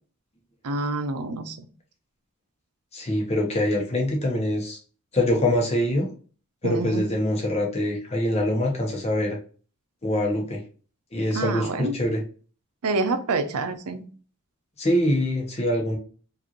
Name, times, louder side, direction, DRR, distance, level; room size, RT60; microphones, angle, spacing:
voice 1, 0.6-1.7 6.6-7.1 11.3-11.9 12.8-14.0, right 3 dB, 85° right, 9 dB, 0.6 m, -27 dB
voice 2, 2.9-4.8 5.1-6.1 6.6-9.4 10.0-10.6 11.1-12.2 14.8-16.0, left 1 dB, 30° left, 0 dB, 0.9 m, -24 dB
4.9 x 2.6 x 2.9 m, 0.39 s
head